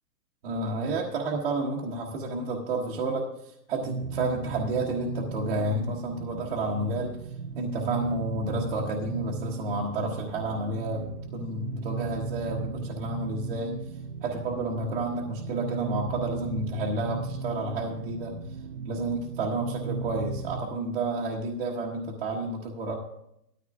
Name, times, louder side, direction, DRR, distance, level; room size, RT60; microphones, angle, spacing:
voice 1, 0.4-7.2 7.5-13.8 14.2-18.4 18.8-22.9, right 2 dB, 40° right, -4 dB, 1.4 m, -30 dB
sound 1, 3.7-20.7, right 4 dB, 70° right, 0.8 m, -36 dB
18.0 x 13.5 x 2.4 m, 0.80 s
hypercardioid pair, 165°, 48 cm